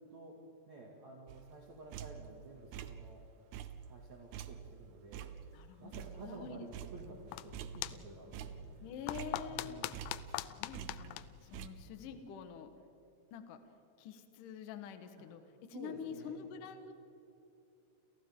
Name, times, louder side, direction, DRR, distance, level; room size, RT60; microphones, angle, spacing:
voice 1, 0.1-3.2 3.8-5.3 5.8-8.6 9.5-10.0 11.5-11.7 15.2-15.3 15.7-16.5, right 3 dB, 45° right, -2 dB, 2.9 m, -52 dB
sound 1, 1.3-2.4 2.7-3.2 3.5-6.4 6.7-8.0 8.3-10.5 10.7-11.7, right 9 dB, 85° right, 2.2 m, -47 dB
voice 2, 5.5-6.7 8.8-10.1 10.5-12.7 13.3-13.6 14.0-15.4 15.7-16.9, left 7 dB, 70° left, 7 dB, 2.1 m, -47 dB
sound 2, 7.0-12.3, left 15 dB, 90° left, 2.4 m, -44 dB
30.0 x 29.0 x 3.8 m, 2.8 s
omnidirectional pair, 5.6 m